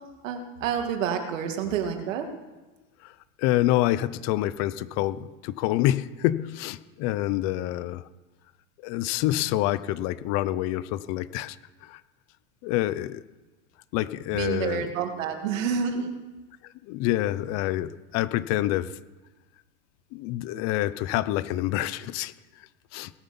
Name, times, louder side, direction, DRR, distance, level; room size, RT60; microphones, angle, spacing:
voice 1, 0.2-2.3 14.3-16.2, right 7 dB, 85° right, 5 dB, 2.4 m, -29 dB
voice 2, 3.0-8.0 8.8-11.6 11.8-12.0 12.6-13.2 13.9-14.9 16.8-18.9 20.1-23.1, left 15 dB, 45° left, 16 dB, 0.8 m, -27 dB
18.0 x 9.7 x 7.1 m, 1.2 s
supercardioid pair, 145°, 38 cm